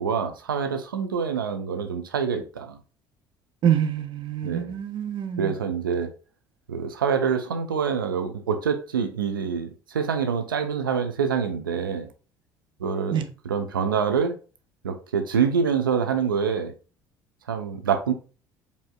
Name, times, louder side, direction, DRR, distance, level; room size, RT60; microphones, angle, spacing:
voice 1, 0.0-2.8 4.4-4.8 5.4-6.1 6.7-12.1 12.8-14.3 14.8-16.7 17.5-18.1, right 6 dB, 80° right, 0.6 m, -26 dB
voice 2, 3.6-5.6 13.1-13.3, right 9 dB, 45° right, 0.7 m, -26 dB
5.1 x 3.4 x 2.3 m
figure-of-eight pair, 60°, 11 cm